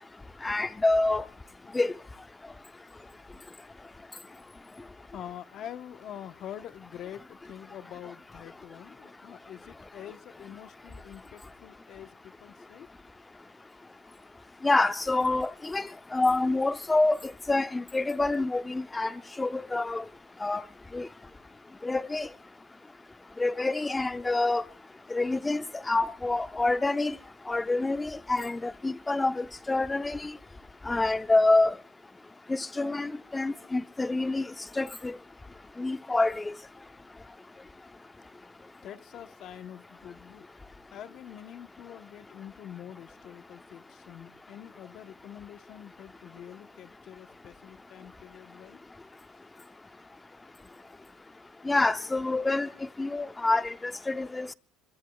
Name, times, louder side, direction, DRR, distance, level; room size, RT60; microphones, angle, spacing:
voice 1, 0.4-1.2 1.7-1.9 14.6-15.8 16.1-17.2 17.5-19.1 19.4-20.0 20.4-20.6 20.9-21.1 21.8-22.3 23.4-24.6 25.1-25.6 25.9-27.1 27.5-30.2 30.9-31.7 32.5-34.4 34.8-35.1 35.8-36.3 51.7-52.7 53.0-53.7 54.1-54.5, left 2 dB, 15° left, 0.8 m, -26 dB
voice 2, 5.1-12.9 38.8-40.5 40.9-48.8, left 10 dB, 55° left, 1.1 m, -45 dB
23.5 x 23.0 x 2.4 m
supercardioid pair, 95°, 0 cm